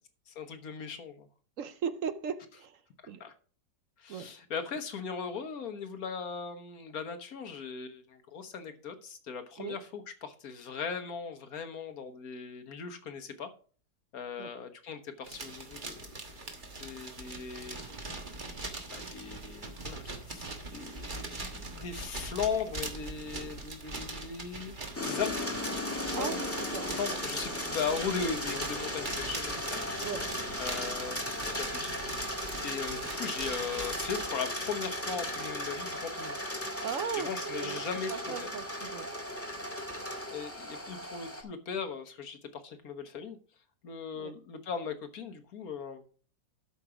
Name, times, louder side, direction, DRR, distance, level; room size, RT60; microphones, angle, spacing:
voice 1, 0.3-1.3 3.2-3.3 4.0-13.5 14.1-16.0 16.8-17.8 18.9-24.8 25.0-25.5 26.0-26.4 26.8-29.8 30.6-32.1 32.3-36.4 37.2-38.5 40.3-43.4 43.8-46.0, left 6 dB, 60° left, 1.5 m, -38 dB
voice 2, 1.6-3.2 4.1-4.3 9.6-9.8 14.4-14.5 26.1-27.0 30.0-30.2 36.8-37.8 38.1-39.1 44.1-44.3, right 7 dB, 65° right, 0.8 m, -38 dB
sound 1, 15.2-34.3, right 2 dB, 30° right, 1.4 m, -42 dB
sound 2, 24.9-41.4, left 1 dB, 10° left, 1.4 m, -36 dB
12.5 x 5.3 x 4.9 m
omnidirectional pair, 1.9 m